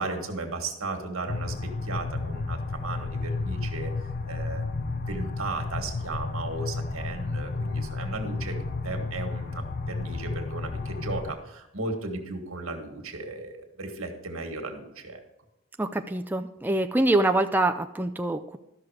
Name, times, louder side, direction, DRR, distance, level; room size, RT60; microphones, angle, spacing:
voice 1, 0.0-3.9 4.2-8.6 8.8-15.2, right 3 dB, 85° right, 4 dB, 1.8 m, -35 dB
sound 1, 1.3-11.3, left 3 dB, 45° left, 0.5 m, -32 dB
voice 2, 15.8-18.6, right 2 dB, 10° right, 6 dB, 0.4 m, -25 dB
13.0 x 6.0 x 4.9 m, 0.92 s
head